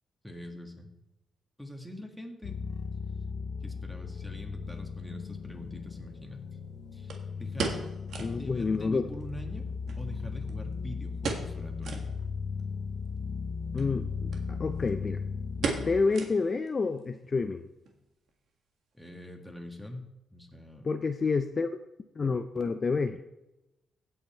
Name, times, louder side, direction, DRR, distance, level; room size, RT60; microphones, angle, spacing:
voice 1, 0.2-0.9 1.6-2.6 3.6-6.4 6.9-7.1 7.4-7.8 8.4-9.6 10.0-12.1 18.9-20.0 20.3-20.9, left 1 dB, ahead, 2 dB, 1.8 m, -43 dB
sound 1, 2.4-16.0, left 5 dB, 65° left, 1.0 m, -37 dB
sound 2, 5.0-5.1 7.1-8.4 8.7-8.8 9.1-9.2 9.9-10.7 11.2-11.6 11.8-12.1 12.6-12.7 13.7-13.9 14.3-14.4 14.7-15.1 15.6-16.7 17.0-17.1 17.7-18.0 18.3-18.4, right 4 dB, 65° right, 1.7 m, -35 dB
voice 2, 8.2-9.1 13.7-15.2 15.6-17.7 20.8-21.7 22.2-23.2, left 4 dB, 35° left, 8 dB, 0.5 m, -29 dB
16.0 x 5.6 x 4.4 m, 0.94 s
cardioid pair, 95°, 0 cm